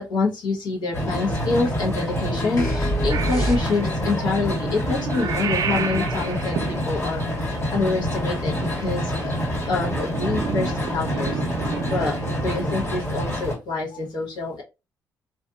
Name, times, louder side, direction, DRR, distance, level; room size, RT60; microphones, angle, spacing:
voice 1, 0.0-9.4 9.7-14.6, left 3 dB, 70° left, -3 dB, 0.9 m, -27 dB
sound 1, 0.9-13.5, left 1 dB, 35° left, 1.4 m, -27 dB
sound 2, 2.6-4.1, right 1 dB, 50° left, 1.3 m, -25 dB
Purr / Meow, 3.1-13.0, right 7 dB, 60° right, 0.4 m, -32 dB
2.7 x 2.4 x 2.3 m, 0.27 s
supercardioid pair, 65°, 8 cm